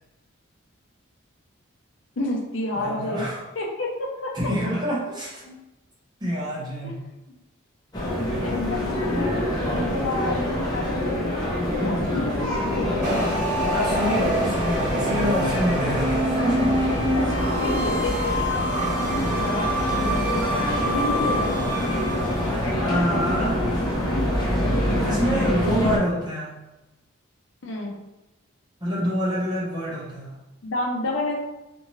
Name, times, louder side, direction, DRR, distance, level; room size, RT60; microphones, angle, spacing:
voice 1, 2.2-3.3 3.6-3.9 4.2-4.3 5.4-5.6 6.8-6.9 8.4-9.4 9.7-11.3 11.8-13.8 17.2-18.3 18.7-21.6 27.6-28.0 30.6-31.4, left 2 dB, 70° left, -1 dB, 0.6 m, -30 dB
voice 2, 2.8-3.4 4.3-5.4 6.2-7.0 12.1-12.5 13.7-16.8 22.8-23.6 25.0-26.6 28.8-30.3, equal, 20° right, -7 dB, 0.9 m, -26 dB
sound 1, 7.9-26.0, left 1 dB, 20° left, 0.6 m, -25 dB
Mallet percussion, 12.5-21.3, left 3 dB, 85° right, 1.0 m, -40 dB
sound 2, 13.0-22.7, right 1 dB, 40° right, 1.1 m, -27 dB
2.6 x 2.5 x 3.0 m, 0.99 s
head